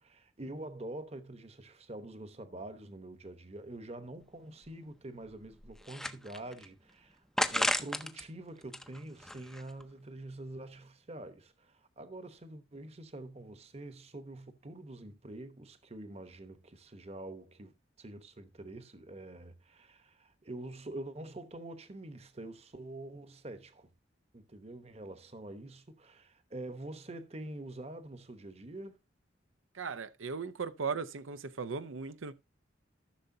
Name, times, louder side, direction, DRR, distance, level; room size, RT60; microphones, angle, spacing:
voice 1, 0.0-23.9 24.3-29.0, right 1 dB, 30° right, 1.0 m, -46 dB
sound 1, 4.2-4.3 4.7-4.8 5.3-6.7 7.4-8.2 8.6-9.8, left 1 dB, ahead, 0.5 m, -34 dB
voice 2, 29.7-32.3, right 5 dB, 85° right, 0.6 m, -37 dB
14.5 x 6.7 x 2.7 m
head